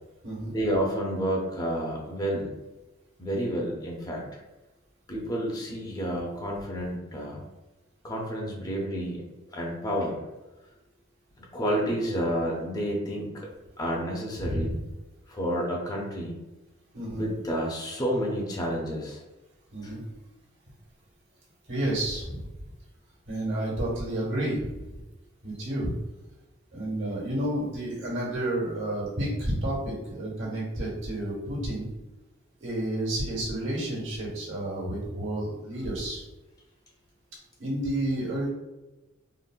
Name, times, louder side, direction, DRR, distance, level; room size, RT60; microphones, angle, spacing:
voice 1, 0.5-2.5 3.2-4.2 5.1-7.5 8.0-9.2 9.5-10.3 11.4-13.5 13.8-14.8 15.3-16.4 17.1-19.2 19.8-19.9, equal, 20° left, -2 dB, 0.4 m, -30 dB
voice 2, 14.4-14.7 16.9-17.2 19.7-20.0 21.7-22.5 23.3-25.0 25.4-25.9 26.7-31.9 32.6-36.3 37.6-38.5, right 1 dB, 65° right, -5 dB, 1.2 m, -30 dB
3.6 x 2.1 x 2.3 m, 1.1 s
head